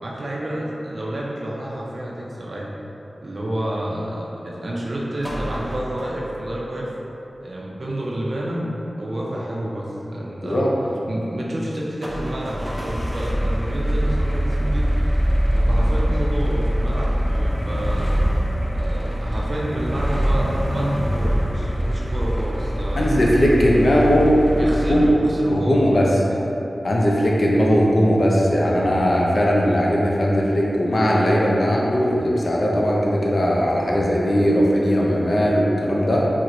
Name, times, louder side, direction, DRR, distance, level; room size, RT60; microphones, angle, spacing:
voice 1, 0.0-2.7 3.2-6.9 7.4-10.7 11.1-14.9 15.5-18.2 18.7-23.1 24.5-26.4, right 1 dB, 65° right, -4 dB, 0.4 m, -29 dB
sound 1, 5.2-6.5 12.0-25.1, equal, ahead, 0.4 m, -23 dB
voice 2, 10.4-10.7 23.0-24.4 24.9-25.1 25.5-26.1 26.8-36.3, equal, 65° left, -3 dB, 0.5 m, -19 dB
4.2 x 2.1 x 2.5 m, 2.9 s
cardioid pair, 40°, 0 cm